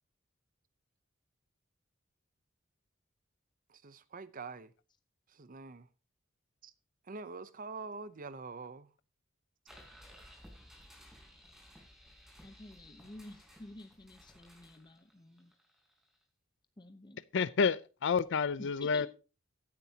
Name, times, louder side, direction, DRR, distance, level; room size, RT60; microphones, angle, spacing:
voice 1, 3.7-4.7 5.3-5.9 6.6-6.7 7.1-8.9, right 4 dB, 40° right, 0.7 m, -45 dB
sound 1, 9.7-16.2, equal, ahead, 4.0 m, -57 dB
voice 2, 12.4-15.5 16.8-17.2 18.6-19.1, left 2 dB, 20° left, 0.7 m, -50 dB
voice 3, 17.3-19.1, left 5 dB, 60° left, 0.5 m, -29 dB
16.5 x 9.6 x 2.8 m
head